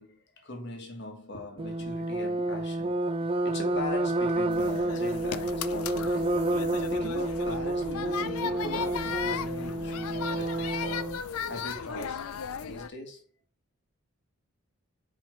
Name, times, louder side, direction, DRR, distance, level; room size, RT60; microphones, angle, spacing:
voice 1, 0.0-6.3 6.9-12.2 12.6-13.2, left 1 dB, 50° left, 1.7 m, -41 dB
sound 1, 1.6-11.2, right 2 dB, 25° right, 0.4 m, -30 dB
sound 2, 3.5-12.3, left 1 dB, 5° left, 1.7 m, -53 dB
sound 3, 4.5-12.9, left 7 dB, 80° left, 0.5 m, -36 dB
5.1 x 5.0 x 4.5 m
head